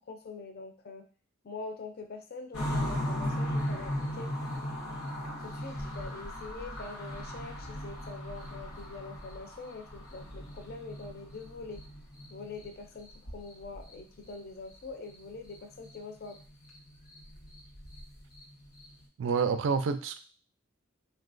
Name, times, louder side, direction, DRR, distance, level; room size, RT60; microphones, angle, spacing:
voice 1, 0.1-1.1 1.4-4.3 5.4-11.8 12.3-16.4, left 3 dB, 45° left, 6 dB, 0.4 m, -44 dB
sound 1, 2.5-12.7 13.0-13.9 14.2-14.3 14.7-15.6 15.8-16.0 16.2-19.0, equal, 85° left, 0.9 m, -37 dB
voice 2, 19.2-20.2, right 5 dB, 60° right, 10 dB, 0.3 m, -28 dB
3.7 x 2.3 x 2.5 m, 0.38 s
head